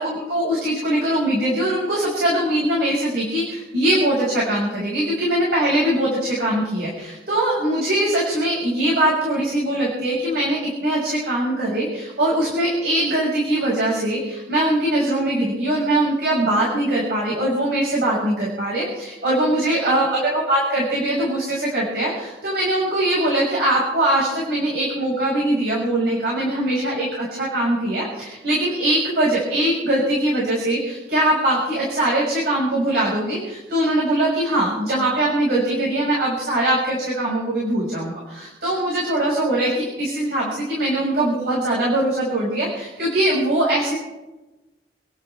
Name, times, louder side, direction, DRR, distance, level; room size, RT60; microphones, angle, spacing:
voice 1, 0.0-43.9, right 1 dB, 65° right, -5 dB, 6.3 m, -21 dB
29.5 x 11.5 x 3.6 m, 1.1 s
head